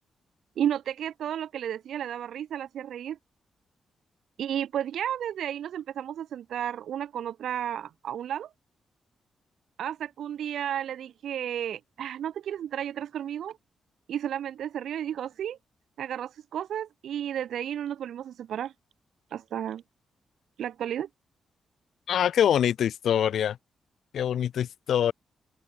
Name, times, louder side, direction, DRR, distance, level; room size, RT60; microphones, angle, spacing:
voice 1, 0.6-3.2 4.4-8.5 9.8-13.6 14.1-15.6 16.0-18.7 19.3-19.8 20.6-21.1, right 10 dB, 80° right, 7.6 m, -32 dB
voice 2, 22.1-23.6 24.1-25.1, left 9 dB, 75° left, 1.8 m, -24 dB
open air
wide cardioid pair, 155°, 0 cm